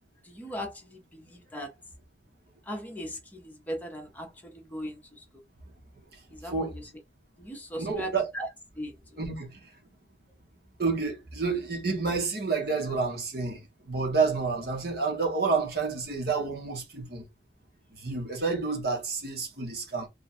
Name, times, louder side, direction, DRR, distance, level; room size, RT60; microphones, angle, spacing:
voice 1, 0.2-1.7 2.6-5.4 6.3-6.9 7.4-8.5 8.8-9.2, equal, 10° left, 0.8 m, -39 dB
voice 2, 6.4-6.8 7.8-8.3 9.2-9.7 10.8-17.2 17.9-20.1, right 4 dB, 55° right, 1.2 m, -29 dB
3.4 x 2.3 x 4.1 m
head